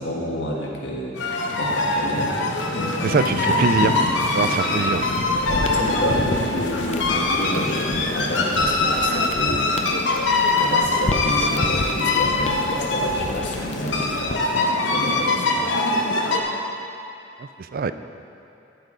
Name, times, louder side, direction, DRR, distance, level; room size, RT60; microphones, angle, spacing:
voice 1, 0.0-2.7 4.4-4.9 5.5-9.6 10.5-15.6, equal, 70° left, -2 dB, 1.5 m, -29 dB
sound 1, 1.2-16.4, left 2 dB, 90° left, 1.0 m, -23 dB
voice 2, 3.0-4.0 4.3-5.1 17.7-17.9, right 5 dB, 50° right, 11 dB, 0.3 m, -22 dB
sound 2, 4.8-14.6, left 2 dB, 35° left, 0.5 m, -33 dB
10.5 x 7.8 x 5.0 m, 2.7 s
head